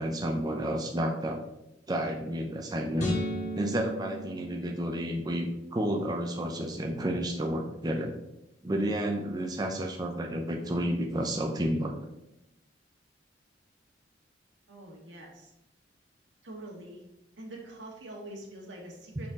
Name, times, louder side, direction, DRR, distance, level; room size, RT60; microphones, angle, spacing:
voice 1, 0.0-1.4 1.9-3.1 3.6-8.2 8.6-12.0, equal, 20° right, 1 dB, 0.6 m, -31 dB
sound 1, 3.0-5.3, equal, 40° left, 1.6 m, -35 dB
voice 2, 14.7-15.5 16.4-17.0 17.4-19.3, right 1 dB, 90° right, -1 dB, 1.7 m, -44 dB
6.2 x 4.2 x 3.7 m, 0.88 s
head